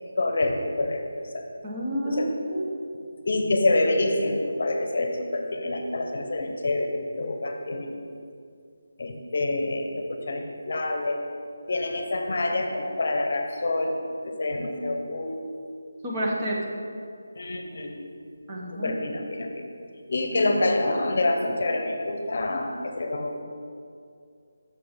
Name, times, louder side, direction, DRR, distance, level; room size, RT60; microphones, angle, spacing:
voice 1, 0.2-1.0 1.3-1.4 2.0-2.3 3.2-7.9 9.0-11.2 11.7-13.9 14.4-15.3 17.4-18.0 18.7-19.5 20.1-22.7 23.0-23.4, left 2 dB, 50° left, 4 dB, 0.8 m, -26 dB
voice 2, 1.6-2.8 16.0-16.6 18.5-18.9, equal, 20° right, -3 dB, 0.8 m, -29 dB
6.7 x 5.0 x 5.7 m, 2.4 s
figure-of-eight pair, 170°, 0 cm